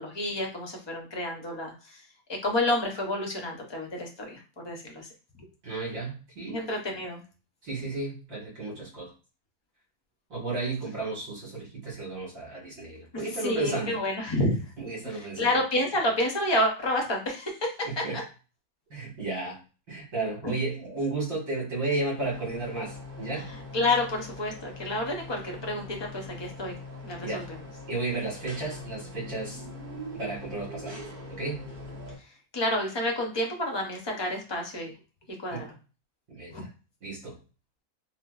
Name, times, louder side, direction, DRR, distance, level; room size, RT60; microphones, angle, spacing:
voice 1, 0.0-2.0 2.3-5.1 6.5-7.2 13.4-14.6 15.0-18.2 20.4-20.5 23.5-26.8 27.0-27.6 32.5-34.9 35.4-35.7 36.5-36.6, left 1 dB, 30° left, 1 dB, 0.4 m, -29 dB
voice 2, 5.6-6.6 7.6-9.1 10.3-13.9 14.8-15.5 17.9-18.2 18.9-19.6 19.9-23.5 27.2-27.4 27.9-29.6 30.1-31.0 31.3-31.7 35.5-35.6 36.3-36.5 37.0-37.4, right 3 dB, 65° right, -4 dB, 2.0 m, -33 dB
sound 1, 22.1-32.2, left 2 dB, 35° right, 0.9 m, -42 dB
4.2 x 2.1 x 2.4 m, 0.34 s
omnidirectional pair, 1.6 m